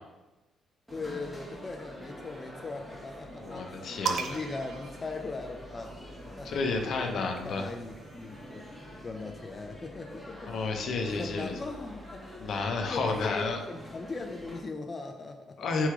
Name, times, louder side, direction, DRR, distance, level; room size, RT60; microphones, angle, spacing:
voice 1, 0.9-5.9 6.3-8.6 9.0-10.8 11.1-12.3 12.9-15.7, left 3 dB, 30° left, 4 dB, 0.4 m, -39 dB
sound 1, 0.9-14.6, equal, 5° right, 1.2 m, -46 dB
voice 2, 3.4-4.4 6.4-7.7 10.5-11.5 12.4-13.6 15.6-15.9, left 3 dB, 65° left, 3 dB, 0.7 m, -31 dB
sound 2, 4.1-5.9 7.0-8.6, right 6 dB, 60° right, 0.4 m, -38 dB
3.5 x 3.1 x 4.7 m, 1.0 s
cardioid pair, 90°, 0 cm